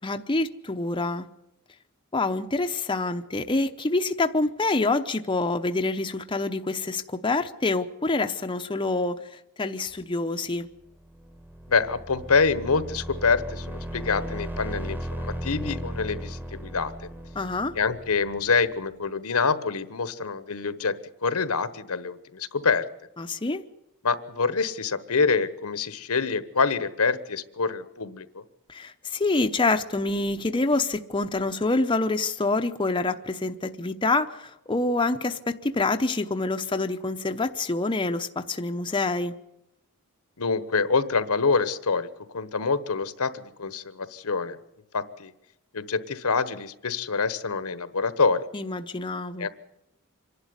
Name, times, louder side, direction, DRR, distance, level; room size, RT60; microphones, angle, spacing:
voice 1, 0.0-1.3 2.1-10.7 17.3-17.7 23.2-23.6 28.7-39.3 48.5-49.5, left 3 dB, 20° left, 6 dB, 0.8 m, -26 dB
sound 1, 11.0-18.7, right 1 dB, 10° right, 1.3 m, -36 dB
voice 2, 11.7-17.1 17.7-21.0 21.2-22.9 24.0-28.4 40.4-42.1 42.3-44.6 44.9-45.3 45.7-48.4 49.4-49.5, left 4 dB, 75° left, 14 dB, 1.2 m, -26 dB
26.0 x 11.5 x 9.7 m, 0.87 s
head